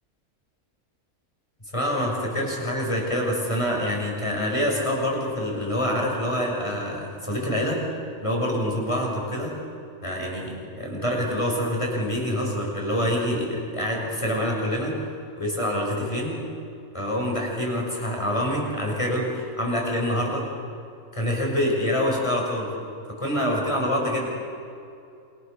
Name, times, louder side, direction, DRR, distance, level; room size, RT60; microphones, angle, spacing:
voice 1, 1.7-7.8 8.2-9.5 10.0-15.0 15.4-16.4 16.9-20.5 21.1-22.7 23.2-24.3, equal, 20° left, -1 dB, 6.5 m, -26 dB
29.0 x 27.5 x 6.9 m, 2.6 s
omnidirectional pair, 1.5 m